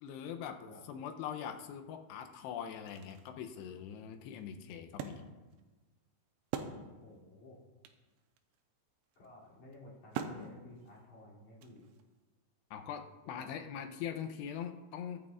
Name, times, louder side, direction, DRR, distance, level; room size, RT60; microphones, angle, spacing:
voice 1, 0.0-5.2 12.7-15.2, left 8 dB, 80° left, 6 dB, 2.7 m, -42 dB
Wood, 2.6-7.3 7.6-7.7 7.9-12.2, right 7 dB, 85° right, 3.0 m, -45 dB
voice 2, 7.0-7.6 9.2-11.9 13.2-13.8, left 1 dB, 45° left, -7 dB, 4.0 m, -54 dB
22.5 x 8.6 x 2.5 m, 1.2 s
omnidirectional pair, 5.0 m